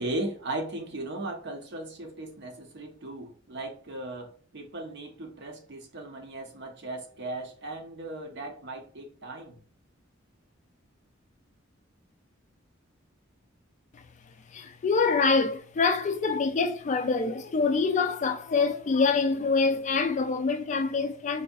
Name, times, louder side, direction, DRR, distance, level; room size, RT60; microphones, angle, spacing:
voice 1, 0.0-9.6, right 2 dB, 60° right, 0.7 m, -37 dB
voice 2, 14.5-21.4, left 4 dB, 35° left, 0.3 m, -25 dB
4.0 x 2.6 x 2.3 m
head